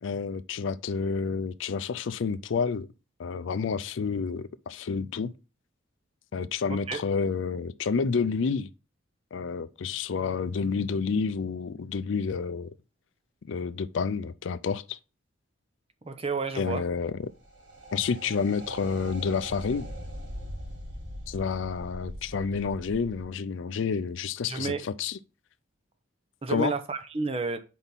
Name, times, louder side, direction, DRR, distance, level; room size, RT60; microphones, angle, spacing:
voice 1, 0.0-2.9 3.2-5.3 6.3-8.7 9.3-12.7 13.5-15.0 16.6-17.3 17.9-19.9 21.3-25.2 26.5-26.7, left 5 dB, 70° left, 0.4 m, -29 dB
voice 2, 6.7-7.0 16.0-16.8 24.5-24.9 26.4-27.6, right 4 dB, 30° right, 0.6 m, -31 dB
sound 1, 16.9-23.2, equal, 70° right, 2.7 m, -41 dB
4.6 x 4.1 x 5.3 m
head